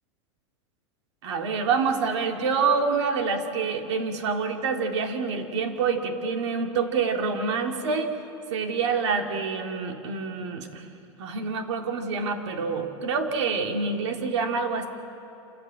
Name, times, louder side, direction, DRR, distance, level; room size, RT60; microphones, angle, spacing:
voice 1, 1.2-8.2 8.5-10.8 11.2-14.9, right 5 dB, 75° right, 4 dB, 2.5 m, -27 dB
27.5 x 13.5 x 8.8 m, 2.8 s
supercardioid pair, 155°, 15 cm